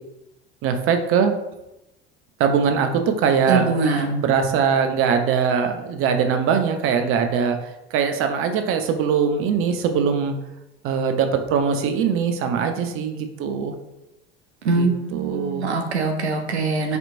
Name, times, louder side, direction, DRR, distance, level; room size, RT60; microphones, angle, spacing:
voice 1, 0.6-1.3 2.4-3.8 4.1-7.6 7.9-10.3 10.8-13.7 14.6-15.7, right 6 dB, 40° right, 6 dB, 0.5 m, -21 dB
voice 2, 3.5-4.2 14.6-17.0, right 3 dB, 90° right, 4 dB, 0.5 m, -23 dB
4.2 x 2.9 x 2.5 m, 0.93 s
figure-of-eight pair, 70°, 32 cm